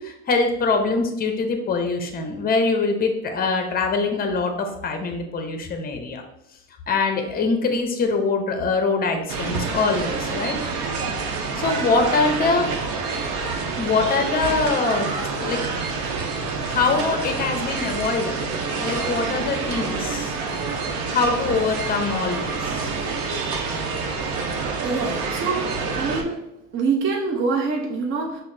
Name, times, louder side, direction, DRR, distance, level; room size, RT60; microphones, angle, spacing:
voice 1, 0.0-6.2 6.9-10.6 11.6-12.7 13.8-15.1 15.4-15.6 16.7-18.4 18.8-20.4 21.1-22.9, left 4 dB, 25° left, 4 dB, 0.6 m, -23 dB
sound 1, 9.3-26.2, right 4 dB, 75° right, 0.7 m, -27 dB
voice 2, 24.8-26.4 26.7-28.4, right 4 dB, 35° right, 0 dB, 0.6 m, -25 dB
5.6 x 2.0 x 2.6 m, 0.87 s
supercardioid pair, 90°, 35 cm